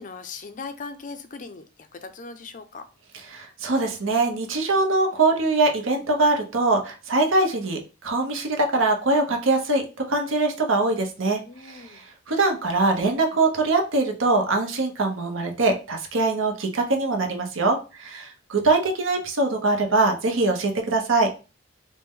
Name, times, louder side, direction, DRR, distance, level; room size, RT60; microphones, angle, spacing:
voice 1, 0.0-1.7 1.9-2.9 11.5-12.0, left 4 dB, 40° left, 9 dB, 0.4 m, -39 dB
voice 2, 3.3-9.8 10.1-21.3, right 2 dB, 75° right, 3 dB, 0.8 m, -23 dB
4.3 x 2.1 x 3.6 m, 0.32 s
head